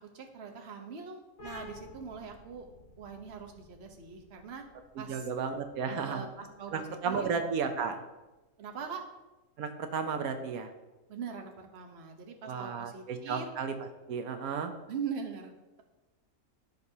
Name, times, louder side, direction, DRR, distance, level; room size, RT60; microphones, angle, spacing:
voice 1, 0.1-2.7 3.0-4.6 5.0-5.3 5.9-7.3 8.6-9.0 11.1-13.5 14.9-15.8, right 6 dB, 50° right, 3 dB, 1.2 m, -42 dB
sound 1, 1.4-8.7, left 3 dB, 70° left, 1.7 m, -53 dB
voice 2, 5.1-6.2 6.7-8.0 9.6-10.7 12.4-14.7, right 5 dB, 85° right, 6 dB, 1.2 m, -33 dB
15.5 x 5.3 x 2.8 m, 1.1 s
omnidirectional pair, 1.5 m